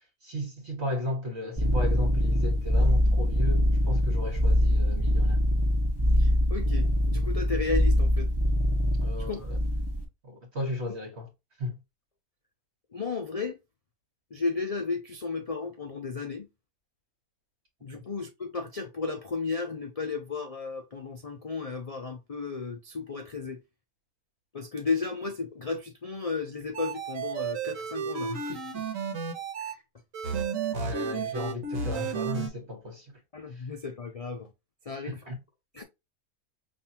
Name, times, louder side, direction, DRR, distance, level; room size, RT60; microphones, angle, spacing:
voice 1, 0.2-5.4 9.0-9.6 10.2-11.3 11.6-11.7 17.9-18.0 30.7-33.0 35.3-35.4, left 1 dB, 50° right, 1.5 m, -35 dB
sound 1, 1.6-10.0, equal, 20° right, 1.1 m, -24 dB
voice 2, 6.2-8.3 9.2-9.4 12.9-13.6 14.3-16.5 17.8-23.6 24.5-28.8 29.6-29.8 33.3-34.5 34.9-35.2 35.7-35.8, left 4 dB, 75° left, 0.3 m, -34 dB
sound 2, 26.7-29.7 30.1-32.5, right 5 dB, 65° right, 1.3 m, -32 dB
5.5 x 2.7 x 2.8 m
omnidirectional pair, 1.5 m